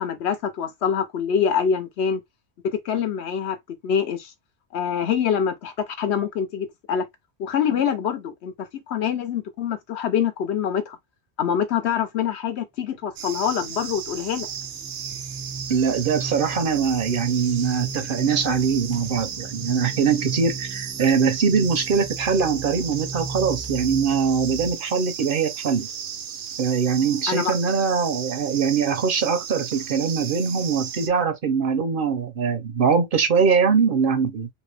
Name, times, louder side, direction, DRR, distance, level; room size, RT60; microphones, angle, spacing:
voice 1, 0.0-2.2 2.6-4.3 4.7-7.0 7.4-11.0 11.4-14.5 27.3-27.6, left 8 dB, 70° left, 1.0 m, -25 dB
sound 1, 13.2-31.1, right 8 dB, 90° right, 0.9 m, -35 dB
sound 2, 13.5-24.7, right 4 dB, 15° right, 0.5 m, -37 dB
voice 2, 15.7-25.9 26.6-34.5, right 6 dB, 60° right, 0.7 m, -22 dB
2.8 x 2.8 x 3.3 m
omnidirectional pair, 1.2 m